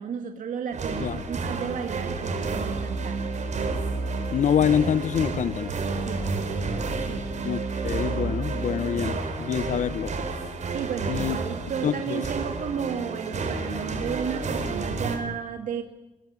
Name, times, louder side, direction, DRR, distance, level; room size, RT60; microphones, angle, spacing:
voice 1, 0.0-3.2 6.0-6.3 7.1-7.3 10.7-15.8, right 7 dB, 90° right, 2.1 m, -33 dB
sound 1, 0.7-15.2, right 3 dB, 65° right, 4.6 m, -30 dB
voice 2, 4.3-5.7 7.4-10.1 11.1-11.4 11.8-12.2, left 8 dB, 70° left, 1.1 m, -26 dB
23.5 x 17.0 x 9.4 m
cardioid pair, 95°, 13 cm